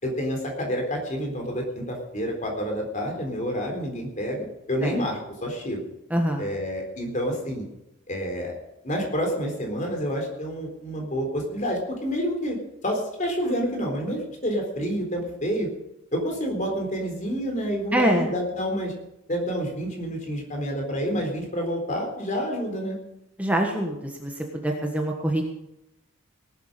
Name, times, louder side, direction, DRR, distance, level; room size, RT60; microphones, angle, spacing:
voice 1, 0.0-5.8 6.4-7.6 8.1-8.5 8.8-12.6 12.8-15.7 16.1-18.9 19.3-23.0, equal, 35° left, 2 dB, 3.9 m, -28 dB
voice 2, 6.1-6.5 17.9-18.3 23.4-23.9 24.2-24.3 24.6-25.4, right 1 dB, 5° right, 1 dB, 1.4 m, -24 dB
18.5 x 11.5 x 5.2 m, 0.88 s
head